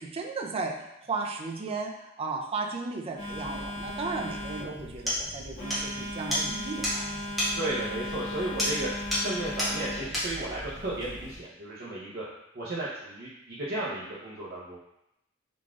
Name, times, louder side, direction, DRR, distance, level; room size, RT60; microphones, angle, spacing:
voice 1, 0.0-7.1 7.4-7.5, right 3 dB, 30° right, 1 dB, 0.4 m, -35 dB
Telephone, 3.2-11.4, left 1 dB, 40° left, 1.3 m, -37 dB
sound 1, 4.5-4.6 5.1-5.2 5.7-5.9 6.3-6.4 6.8-7.0 7.4-7.6 8.6-8.8 9.1-9.3 9.6-9.7 10.1-10.3, equal, ahead, 1.3 m, -28 dB
voice 2, 7.6-8.9 9.2-12.2 12.5-14.8, right 2 dB, 55° right, -8 dB, 0.8 m, -34 dB
4.7 x 3.9 x 2.4 m, 0.86 s
head